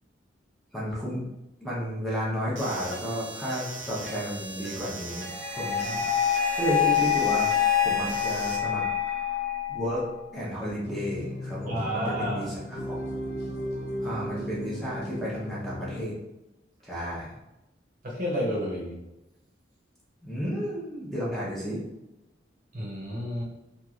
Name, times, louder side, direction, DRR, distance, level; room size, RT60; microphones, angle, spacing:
voice 1, 0.7-1.2 1.6-6.0 6.5-7.5 7.8-8.8 9.7-10.1 10.3-13.0 14.0-16.2 16.8-17.3 20.2-21.8, equal, ahead, -8 dB, 0.7 m, -32 dB
sound 1, 2.6-8.6, right 2 dB, 90° right, 0.7 m, -39 dB
sound 2, 5.1-10.1, left 9 dB, 90° left, 0.9 m, -26 dB
sound 3, 10.8-16.0, equal, 55° left, 0.6 m, -35 dB
voice 2, 11.7-12.5 18.0-19.0 22.7-23.5, equal, 45° right, -5 dB, 0.7 m, -30 dB
3.0 x 2.4 x 2.4 m, 0.95 s
head